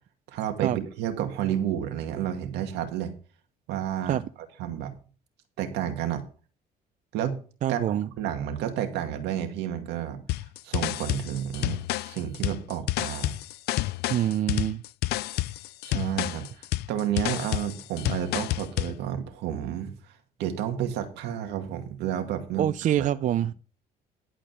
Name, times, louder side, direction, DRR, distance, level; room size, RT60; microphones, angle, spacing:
voice 1, 0.3-3.1 3.7-4.2 4.6-4.9 5.6-6.2 7.1-7.4 7.7-10.2 10.6-13.4 15.8-16.5 16.9-19.9 20.4-22.7 23.0-23.1, right 10 dB, 85° right, 2.0 m, -30 dB
voice 2, 7.6-8.1 14.1-14.8 22.6-23.5, right 11 dB, 50° right, 0.5 m, -25 dB
sound 1, 10.3-19.0, left 17 dB, 75° left, 0.4 m, -29 dB
11.5 x 5.2 x 6.6 m
cardioid pair, 110°, 17 cm